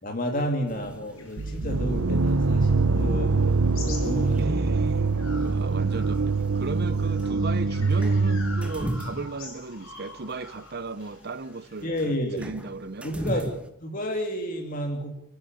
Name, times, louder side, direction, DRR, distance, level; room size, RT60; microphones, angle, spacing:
voice 1, 0.0-3.5 3.8-4.5 11.8-12.4 13.0-13.5 13.8-15.2, equal, 40° left, 2.7 m, -31 dB
sound 1, 0.7-13.7, equal, 5° right, 1.6 m, -41 dB
sound 2, 1.2-4.7 5.1-11.8, left 4 dB, 80° left, 6.3 m, -46 dB
sound 3, 1.4-9.2, right 3 dB, 85° right, 1.0 m, -24 dB
voice 2, 4.4-5.1 5.4-13.5, right 3 dB, 45° right, 0.7 m, -36 dB
29.5 x 10.5 x 9.5 m
head